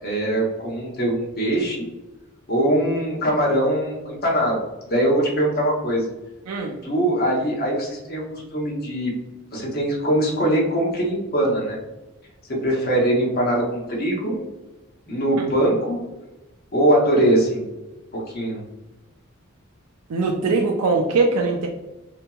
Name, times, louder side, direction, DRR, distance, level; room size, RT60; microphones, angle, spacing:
voice 1, 0.0-1.9 2.5-4.6 4.9-6.1 6.8-9.1 9.5-11.8 12.5-14.4 15.1-16.1 16.7-17.6 18.1-18.6, right 1 dB, 45° left, -2 dB, 0.8 m, -22 dB
voice 2, 6.5-6.8 20.1-21.7, right 3 dB, 85° right, 1 dB, 0.4 m, -21 dB
2.8 x 2.7 x 2.2 m, 1.0 s
head